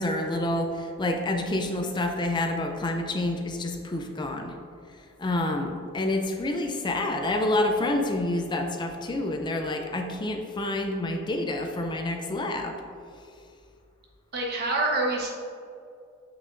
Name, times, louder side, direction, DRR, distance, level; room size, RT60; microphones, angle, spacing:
voice 1, 0.0-4.5 5.2-12.8, left 1 dB, 20° left, 4 dB, 0.4 m, -28 dB
voice 2, 14.3-15.3, right 2 dB, 55° right, -1 dB, 1.2 m, -26 dB
8.0 x 6.2 x 2.5 m, 2.4 s
head